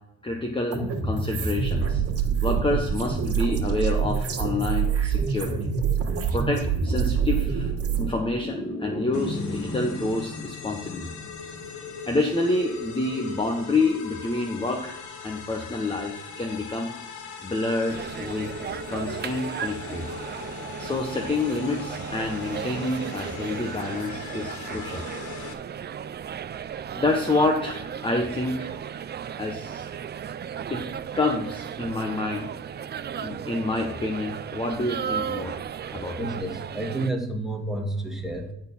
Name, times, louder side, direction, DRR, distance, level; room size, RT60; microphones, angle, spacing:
voice 1, 0.2-2.0 2.4-5.7 6.3-11.1 12.1-16.9 17.4-18.5 18.9-20.0 20.8-25.1 27.0-28.7 29.4-29.9 30.7-30.8 31.1-32.8 33.2-36.3, left 2 dB, 15° left, 3 dB, 1.0 m, -28 dB
sound 1, 0.7-8.1, right 6 dB, 50° right, 1.5 m, -25 dB
sound 2, 9.1-25.5, left 5 dB, 75° left, 1.3 m, -39 dB
sound 3, 17.9-37.1, right 8 dB, 35° right, 0.4 m, -35 dB
voice 2, 36.2-38.5, right 2 dB, ahead, 1 dB, 1.8 m, -30 dB
10.5 x 4.3 x 5.6 m, 0.85 s
cardioid pair, 90°, 30 cm